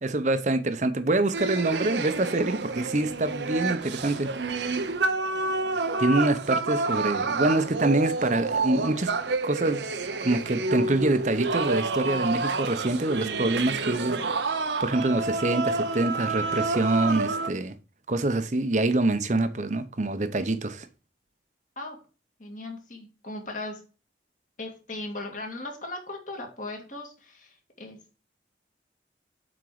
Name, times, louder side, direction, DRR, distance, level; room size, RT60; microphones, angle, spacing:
voice 1, 0.0-4.3 6.0-9.1 9.4-9.9 10.2-14.2 14.5-17.7 18.1-20.9, right 2 dB, 40° right, 0.8 m, -25 dB
sound 1, 1.3-17.5, right 3 dB, 80° right, 0.8 m, -29 dB
voice 2, 22.4-23.8 24.6-28.0, left 2 dB, 45° left, 2.2 m, -38 dB
7.9 x 4.5 x 4.8 m
head